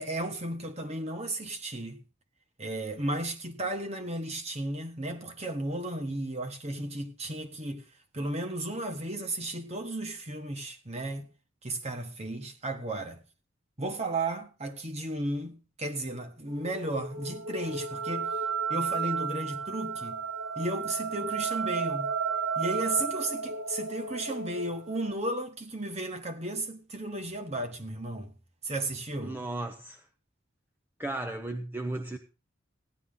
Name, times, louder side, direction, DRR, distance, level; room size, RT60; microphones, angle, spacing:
voice 1, 0.0-2.0 2.6-7.8 8.1-11.3 11.6-13.2 13.8-18.3 18.7-20.2 20.5-22.1 22.5-28.3 28.6-29.4, right 1 dB, 30° right, 1.5 m, -34 dB
sound 1, 16.5-25.1, right 5 dB, 75° right, 1.3 m, -33 dB
voice 2, 29.2-30.1 31.0-32.2, right 2 dB, 10° right, 0.8 m, -35 dB
15.5 x 11.0 x 3.8 m
head